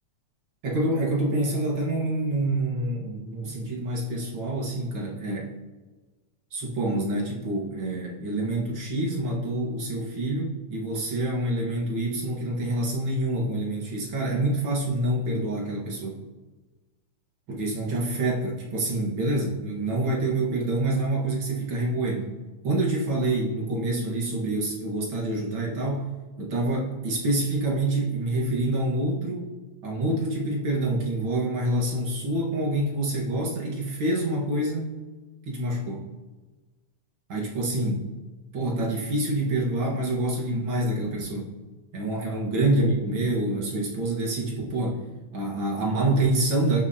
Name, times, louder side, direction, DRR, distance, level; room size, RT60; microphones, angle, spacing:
voice 1, 0.6-5.6 6.5-16.2 17.5-22.3 22.6-26.1 26.4-29.5 29.8-35.0 35.5-36.1 37.3-38.1 38.5-41.4 41.9-45.0 45.3-46.8, right 1 dB, 45° right, -3 dB, 1.9 m, -27 dB
16.5 x 6.0 x 2.8 m, 1.3 s
omnidirectional pair, 3.5 m